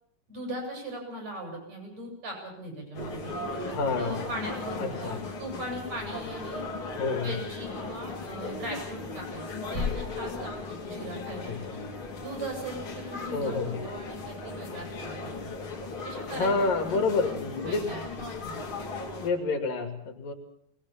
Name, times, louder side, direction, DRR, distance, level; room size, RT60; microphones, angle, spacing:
voice 1, 0.3-3.5 4.0-6.7 7.2-11.8 12.2-15.5 16.0-18.0 18.4-18.6, right 1 dB, 50° right, 1 dB, 8.2 m, -39 dB
sound 1, 2.9-19.3, left 3 dB, 40° left, 3.1 m, -37 dB
voice 2, 3.7-4.3 4.8-5.2 7.0-7.3 11.5-11.8 13.3-13.8 16.4-18.0 19.2-20.3, left 3 dB, 80° left, 4 dB, 4.2 m, -29 dB
22.5 x 19.5 x 7.1 m, 0.76 s
omnidirectional pair, 3.9 m